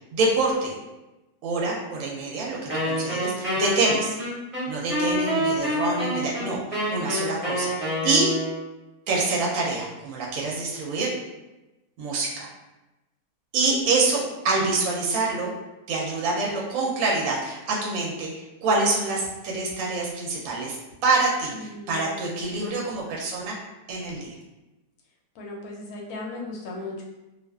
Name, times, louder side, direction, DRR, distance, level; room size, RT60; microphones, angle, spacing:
voice 1, 0.1-0.7 1.4-4.2 4.7-8.3 9.1-11.1 12.0-12.5 13.5-15.5 15.9-23.6 23.9-24.4, right 3 dB, 70° right, -3 dB, 0.8 m, -26 dB
Wind instrument woodwind instrument, 2.7-8.7, equal, 45° right, 0.4 m, -27 dB
voice 2, 21.5-22.8 25.4-27.0, left 2 dB, 70° left, -1 dB, 1.0 m, -37 dB
2.4 x 2.3 x 2.2 m, 1.0 s
omnidirectional pair, 1.7 m